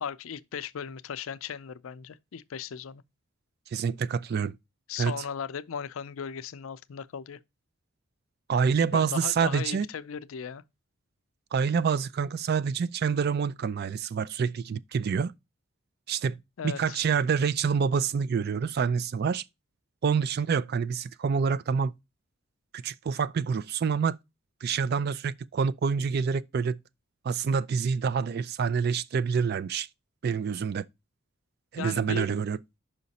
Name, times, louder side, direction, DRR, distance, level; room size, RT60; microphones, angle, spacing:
voice 1, 0.0-3.0 4.9-7.4 8.9-10.6 16.6-17.0 31.8-32.3, left 7 dB, 90° left, 0.4 m, -37 dB
voice 2, 3.7-4.6 5.0-5.1 8.5-9.9 11.5-15.3 16.1-16.4 16.6-19.4 20.0-21.9 22.7-24.2 24.6-26.8 27.2-29.9 30.2-30.9 31.7-32.6, right 6 dB, 50° right, 0.3 m, -27 dB
5.7 x 5.1 x 4.1 m
head